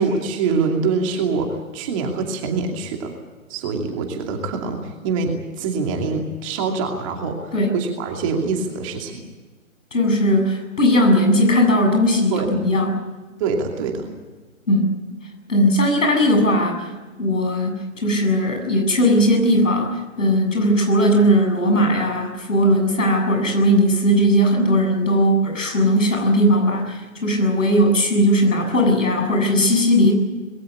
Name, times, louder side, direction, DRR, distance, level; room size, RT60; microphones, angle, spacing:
voice 1, 0.0-3.1 3.5-9.2 12.3-12.6 13.4-14.1, right 4 dB, 25° right, 3 dB, 2.5 m, -24 dB
voice 2, 9.9-13.0 14.7-15.0 15.5-16.9 17.2-19.9 20.2-30.1, equal, 65° left, 3 dB, 7.7 m, -18 dB
21.0 x 17.5 x 9.6 m, 1.3 s
figure-of-eight pair, 135°, 41 cm